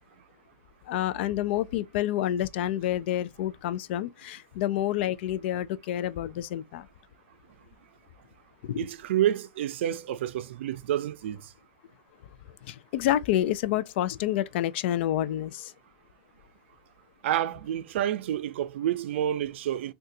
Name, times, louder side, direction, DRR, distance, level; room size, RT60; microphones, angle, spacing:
voice 1, 0.9-6.9 8.6-8.9 12.7-15.7, left 12 dB, 70° left, 0.4 m, -28 dB
voice 2, 8.8-11.5 17.2-19.9, right 11 dB, 80° right, 0.4 m, -29 dB
3.7 x 2.3 x 2.7 m
hypercardioid pair, 120°, 6 cm